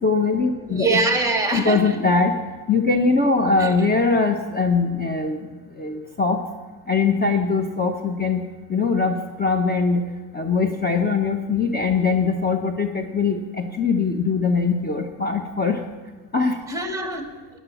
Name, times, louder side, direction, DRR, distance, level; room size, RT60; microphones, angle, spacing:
voice 1, 0.0-1.0 1.5-2.4 2.7-5.5 5.8-6.4 6.9-8.4 8.7-10.0 10.3-15.8 16.3-16.6, left 4 dB, 25° left, 4 dB, 1.0 m, -21 dB
voice 2, 0.7-2.0 3.6-3.7 16.7-17.3, right 3 dB, 10° right, 4 dB, 1.9 m, -23 dB
17.5 x 11.0 x 7.2 m, 1.3 s
wide cardioid pair, 170°, 38 cm